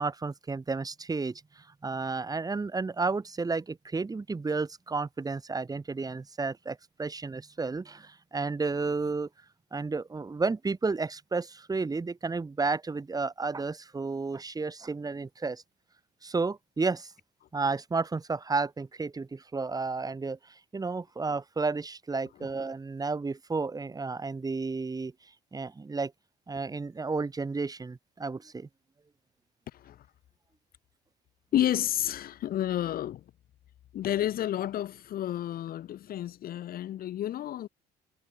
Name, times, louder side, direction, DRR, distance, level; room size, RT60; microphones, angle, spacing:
voice 1, 0.0-9.3 9.7-15.6 16.2-17.1 17.5-25.1 25.5-26.1 26.5-28.7, right 4 dB, 20° right, 6.1 m, -32 dB
voice 2, 31.5-33.2 33.9-37.7, left 12 dB, 60° left, 2.0 m, -30 dB
cardioid pair, 110°, 17 cm